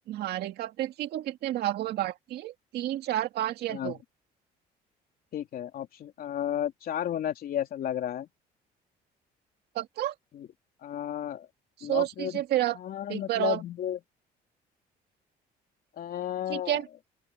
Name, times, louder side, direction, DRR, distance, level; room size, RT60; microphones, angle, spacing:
voice 1, 0.1-4.0 9.8-10.1 11.8-12.8 13.1-13.6 16.5-16.9, right 13 dB, 75° right, 2.2 m, -30 dB
voice 2, 5.3-8.3 10.3-10.5 10.8-11.5 11.8-12.4 12.7-14.0 16.0-16.8, left 10 dB, 60° left, 3.4 m, -33 dB
open air
cardioid pair, 110°, 17 cm